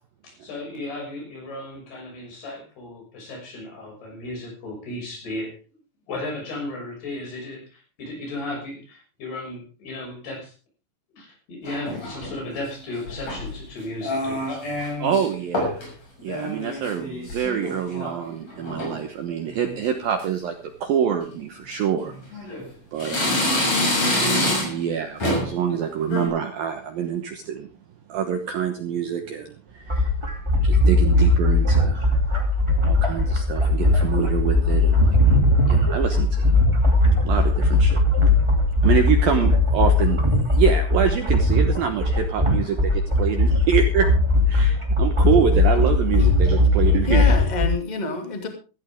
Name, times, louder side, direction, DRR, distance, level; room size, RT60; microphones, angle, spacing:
voice 1, 0.2-5.5 6.1-10.5 11.1-14.6, left 2 dB, 55° left, 1 dB, 8.1 m, -35 dB
sound 1, 11.7-12.4 13.1-13.6 14.0-15.3 15.5-15.9 16.2-18.2 18.5-19.0 19.5-19.9 20.2-20.3 21.2-21.4 22.0-22.7 23.0-24.9 25.2-25.6 26.0-26.3, left 1 dB, 35° left, 7.8 m, -26 dB
voice 2, 15.0-15.8 16.2-20.5 20.8-22.5 22.9-23.5 24.6-27.7 28.1-30.1 30.6-32.1 32.8-35.2 35.7-36.5 37.2-38.0 38.8-40.2 40.5-44.1 44.5-47.3, right 8 dB, 70° right, 6 dB, 2.3 m, -26 dB
sound 2, 29.9-47.7, left 2 dB, 20° right, 0.7 m, -19 dB
voice 3, 45.8-46.3 47.1-48.5, left 2 dB, 85° left, 4 dB, 0.4 m, -27 dB
16.0 x 15.0 x 3.6 m, 0.34 s
omnidirectional pair, 5.6 m